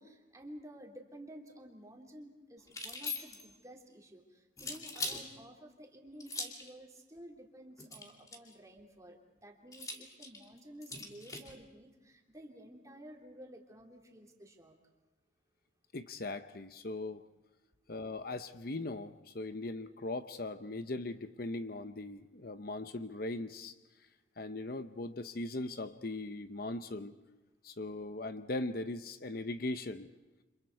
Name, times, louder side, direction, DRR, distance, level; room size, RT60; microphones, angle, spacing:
voice 1, 0.0-14.8, equal, 15° right, 1 dB, 3.1 m, -52 dB
sound 1, 2.7-3.6 4.6-5.2 6.2-6.7 7.8-8.5 9.7-11.5, left 3 dB, 20° left, 2.5 m, -41 dB
voice 2, 15.9-17.2 17.9-23.7 24.4-27.2 27.6-30.1, left 2 dB, 50° left, 10 dB, 0.8 m, -39 dB
29.5 x 26.5 x 4.7 m, 1.1 s
head